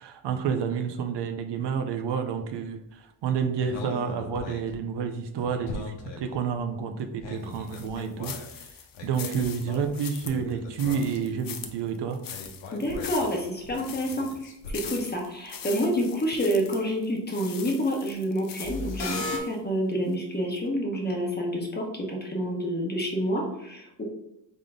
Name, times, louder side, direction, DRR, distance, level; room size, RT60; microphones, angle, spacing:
voice 1, 0.0-8.3 9.0-12.2, right 6 dB, 70° right, 6 dB, 0.6 m, -29 dB
sound 1, 3.6-4.8 5.4-6.5 7.0-8.7 8.9-11.5 11.8-11.9 12.3-15.1 18.6-19.4, left 3 dB, 85° left, 1.0 m, -38 dB
sound 2, 7.5-19.6 20.0-20.1 20.6-20.7, left 8 dB, 50° left, 0.6 m, -42 dB
voice 2, 12.7-24.0, equal, 20° left, 0 dB, 1.1 m, -28 dB
3.7 x 3.6 x 3.6 m, 0.82 s
cardioid pair, 110°, 44 cm